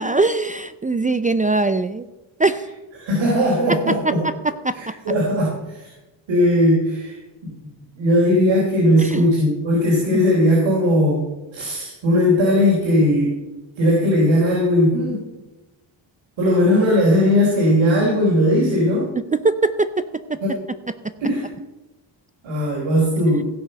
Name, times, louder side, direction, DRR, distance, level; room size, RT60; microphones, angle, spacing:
voice 1, 0.0-2.0 2.4-2.7 3.7-4.9 9.0-9.3 10.1-10.2 19.3-20.4, right 3 dB, 20° right, 12 dB, 0.4 m, -22 dB
voice 2, 3.0-4.2 4.7-5.9 6.3-7.2 7.4-7.7 8.0-11.2 11.5-13.3 13.8-15.2 16.4-19.1 20.4-20.6 21.2-21.5 22.4-23.4, left 1 dB, 75° right, -4 dB, 4.0 m, -18 dB
16.0 x 6.1 x 6.6 m, 1.1 s
cardioid pair, 110°, 46 cm